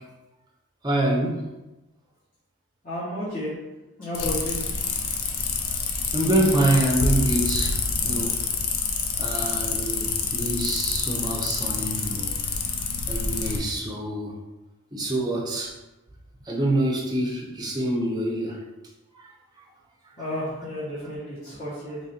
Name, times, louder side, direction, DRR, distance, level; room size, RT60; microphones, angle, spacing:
voice 1, 0.8-1.4 6.1-7.8 8.0-8.4 9.2-12.3 13.1-14.3 14.9-15.7 16.5-18.6, right 1 dB, 15° right, -2 dB, 0.6 m, -25 dB
voice 2, 2.8-3.5 4.0-4.6 20.2-22.0, left 1 dB, 35° left, -11 dB, 1.0 m, -32 dB
sound 1, 4.1-13.6, left 5 dB, 75° left, 0.5 m, -27 dB
3.1 x 2.5 x 4.1 m, 1.0 s
head